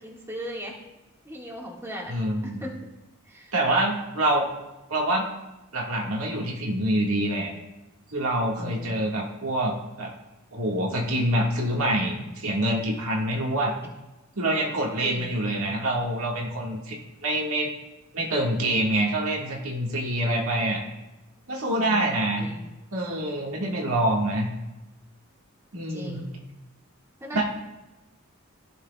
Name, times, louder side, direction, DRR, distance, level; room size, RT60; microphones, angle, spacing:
voice 1, 0.0-0.7 1.2-2.1 2.4-2.7 3.3-3.5 8.6-9.2 15.0-15.3 21.7-22.1 22.4-22.6 25.9-26.3 27.2-27.4, equal, 15° right, -2 dB, 1.7 m, -38 dB
voice 2, 2.1-2.7 3.5-4.5 4.9-5.3 5.7-7.5 8.1-10.1 10.5-13.7 14.4-17.0 17.2-17.7 18.1-20.8 21.5-22.5 22.9-24.5 25.7-26.2 27.3-27.4, right 1 dB, 90° right, -2 dB, 1.7 m, -26 dB
15.5 x 6.4 x 2.3 m, 1.0 s
head